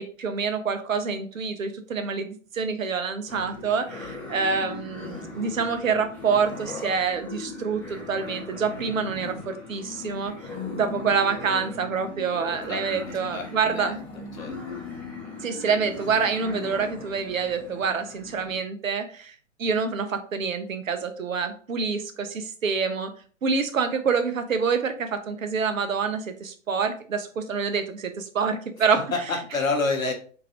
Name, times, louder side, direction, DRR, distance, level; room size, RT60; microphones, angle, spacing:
voice 1, 0.0-10.3 10.7-14.0 15.4-23.1 23.4-29.0, right 5 dB, 85° right, 8 dB, 0.7 m, -27 dB
sound 1, 3.3-18.6, left 3 dB, 5° left, 0.6 m, -38 dB
voice 2, 12.7-13.9 14.3-14.5 29.1-30.1, left 3 dB, 90° left, 2 dB, 1.1 m, -28 dB
3.9 x 2.5 x 2.8 m, 0.42 s
hypercardioid pair, 120°, 39 cm